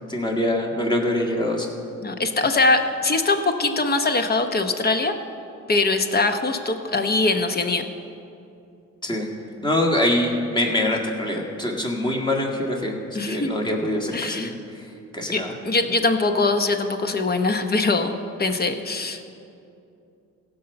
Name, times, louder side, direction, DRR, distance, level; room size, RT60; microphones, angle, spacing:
voice 1, 0.1-1.7 9.0-9.3 9.6-14.5 15.1-15.5, left 1 dB, 15° left, 0 dB, 1.9 m, -24 dB
voice 2, 2.0-5.1 5.7-7.9 13.1-13.5 14.1-14.5 15.3-18.1 18.4-19.3, left 3 dB, 30° left, 7 dB, 0.9 m, -22 dB
16.5 x 5.5 x 6.9 m, 2.7 s
cardioid pair, 90°, 30 cm